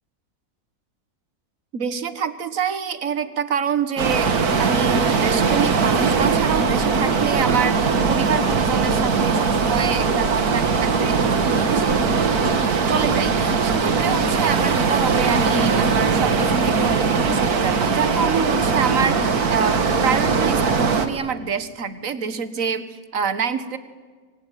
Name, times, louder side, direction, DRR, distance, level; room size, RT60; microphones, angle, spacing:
voice 1, 1.7-12.1 12.9-23.8, right 6 dB, 60° right, 12 dB, 1.8 m, -26 dB
sound 1, 4.0-21.1, right 5 dB, 80° right, 2.2 m, -20 dB
27.0 x 23.5 x 9.2 m, 1.5 s
omnidirectional pair, 1.6 m